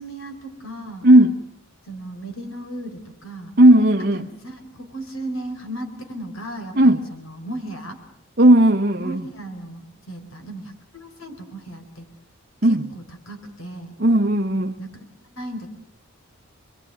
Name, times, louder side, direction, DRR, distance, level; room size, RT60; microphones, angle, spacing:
voice 1, 0.0-1.1 1.9-3.5 4.1-8.0 9.0-12.1 12.6-13.9 14.8-14.9 15.3-15.7, right 1 dB, 70° left, 7 dB, 4.5 m, -36 dB
voice 2, 1.0-1.4 3.6-4.3 6.7-7.0 8.4-9.2 12.6-12.8 14.0-14.7, right 1 dB, 45° right, 2 dB, 1.2 m, -15 dB
27.5 x 22.5 x 9.2 m, 0.72 s
head